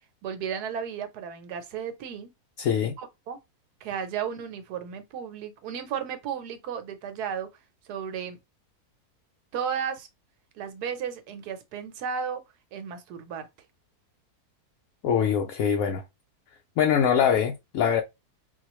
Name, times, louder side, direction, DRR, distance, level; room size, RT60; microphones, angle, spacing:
voice 1, 0.2-2.3 3.0-3.4 3.8-7.5 7.9-8.4 9.5-10.1 10.6-12.4 12.7-13.5, right 7 dB, 85° right, 1.3 m, -34 dB
voice 2, 2.6-2.9 15.0-16.0 16.8-18.0, left 8 dB, 70° left, 0.9 m, -23 dB
4.1 x 2.4 x 2.9 m
omnidirectional pair, 1.7 m